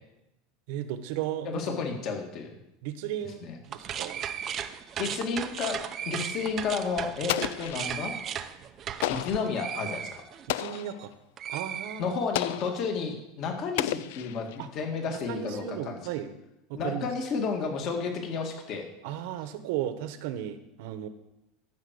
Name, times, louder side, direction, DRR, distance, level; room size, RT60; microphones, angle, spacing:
voice 1, 0.7-1.7 2.8-4.2 10.6-11.1 11.5-12.1 14.6-14.7 15.1-16.3 16.7-17.1 19.0-21.1, right 11 dB, 65° right, 10 dB, 1.3 m, -35 dB
voice 2, 1.5-2.6 3.4-3.6 5.0-8.1 9.1-10.2 12.0-16.0 16.7-18.9, left 5 dB, 40° left, 3 dB, 2.0 m, -32 dB
sound 1, 3.6-11.1 11.4-12.5, right 9 dB, 30° right, 0.7 m, -36 dB
Explosion, 7.3-8.2 9.0-9.6 10.5-11.0 12.4-12.9 13.8-14.7, left 14 dB, 75° left, 0.4 m, -32 dB
14.0 x 6.3 x 8.1 m, 0.90 s
supercardioid pair, 160°, 0 cm